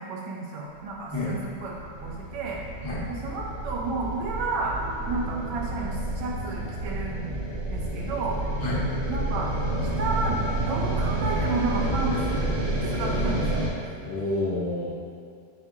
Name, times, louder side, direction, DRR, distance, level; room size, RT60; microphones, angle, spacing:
voice 1, 0.0-1.7 2.0-2.6 3.1-4.8 5.1-7.3 7.7-8.4 9.1-9.5 10.0-12.5 12.9-13.7, right 3 dB, 85° right, -2 dB, 1.4 m, -31 dB
sound 1, 1.1-13.7, right 1 dB, 50° right, 1.0 m, -29 dB
voice 2, 14.0-14.9, left 2 dB, 70° left, -7 dB, 1.7 m, -28 dB
6.9 x 2.9 x 2.3 m, 2.3 s
omnidirectional pair, 1.8 m